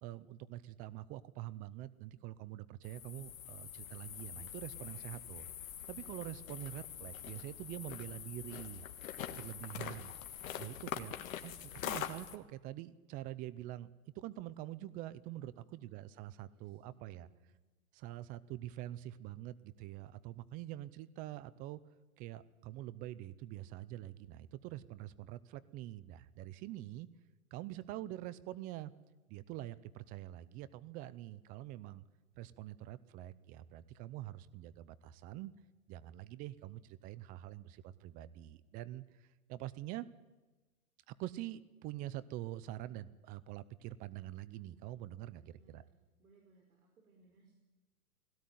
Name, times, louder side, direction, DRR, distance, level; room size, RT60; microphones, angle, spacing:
voice 1, 0.0-5.5 5.9-8.8 9.4-10.1 10.5-17.3 17.9-21.8 22.2-27.1 27.5-28.9 29.3-32.0 32.3-35.5 35.9-40.1 41.1-45.8, right 14 dB, 20° right, 18 dB, 0.6 m, -45 dB
sound 1, 2.8-12.4, left 10 dB, 65° left, 1.9 m, -44 dB
voice 2, 9.3-9.8 15.6-16.0 16.4-17.5 45.2-47.5, right 3 dB, 75° right, 2 dB, 4.8 m, -68 dB
19.5 x 17.0 x 9.3 m, 1.2 s
hypercardioid pair, 140°, 43 cm